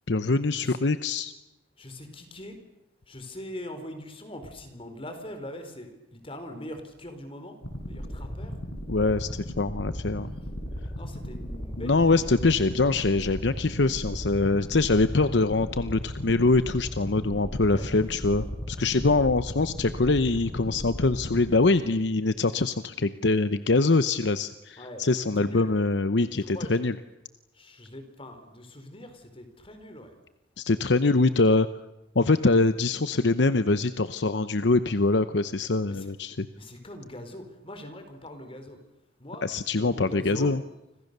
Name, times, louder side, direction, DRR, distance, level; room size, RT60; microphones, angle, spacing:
voice 1, 0.1-1.3 8.9-10.3 11.8-27.0 30.6-31.7 32.1-36.5 39.4-40.6, left 3 dB, 70° left, 12 dB, 0.9 m, -24 dB
voice 2, 1.8-2.6 3.1-7.6 7.9-8.6 11.0-12.2 17.6-17.9 24.8-25.0 25.4-25.7 26.5-26.8 27.6-30.1 35.9-36.1 36.5-38.8 39.2-40.5, left 1 dB, 30° left, 7 dB, 4.3 m, -42 dB
sound 1, 7.6-22.0, equal, 85° left, 8.0 m, -36 dB
30.0 x 26.0 x 6.8 m, 0.97 s
head